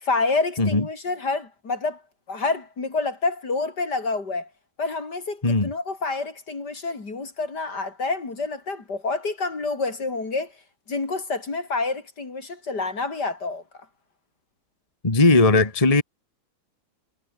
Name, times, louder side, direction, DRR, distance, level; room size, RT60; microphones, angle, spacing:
voice 1, 0.0-2.0 2.3-4.5 4.8-10.5 10.9-13.6, left 3 dB, 60° left, 4.5 m, -28 dB
voice 2, 15.0-16.0, left 2 dB, 20° left, 2.1 m, -18 dB
omnidirectional pair, 2.0 m